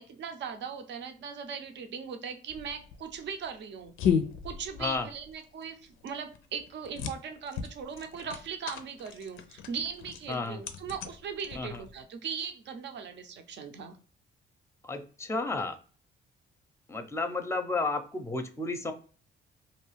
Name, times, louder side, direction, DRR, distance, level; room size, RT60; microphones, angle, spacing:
voice 1, 0.0-3.9 4.4-14.0, right 6 dB, 65° right, 6 dB, 0.6 m, -39 dB
sound 1, 2.5-12.0, left 7 dB, 85° left, 0.4 m, -35 dB
voice 2, 10.3-10.6 11.6-11.8 14.8-15.8 16.9-18.9, left 3 dB, 15° left, 7 dB, 0.5 m, -32 dB
2.6 x 2.3 x 3.1 m, 0.40 s
cardioid pair, 90°, 20 cm